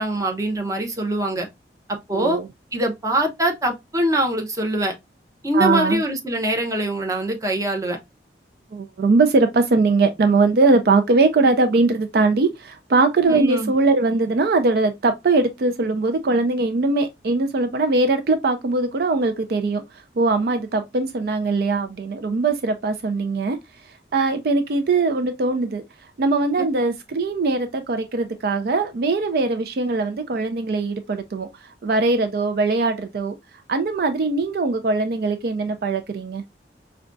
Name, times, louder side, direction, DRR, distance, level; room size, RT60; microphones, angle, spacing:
voice 1, 0.0-1.5 1.9-2.4 2.7-4.9 5.4-8.0 13.3-13.7, right 1 dB, 20° right, 0.7 m, -23 dB
voice 2, 2.1-2.5 5.5-6.0 8.7-23.6 24.1-25.8 26.2-33.4 33.7-36.4, right 3 dB, 60° right, 0.4 m, -21 dB
4.8 x 2.3 x 2.5 m
head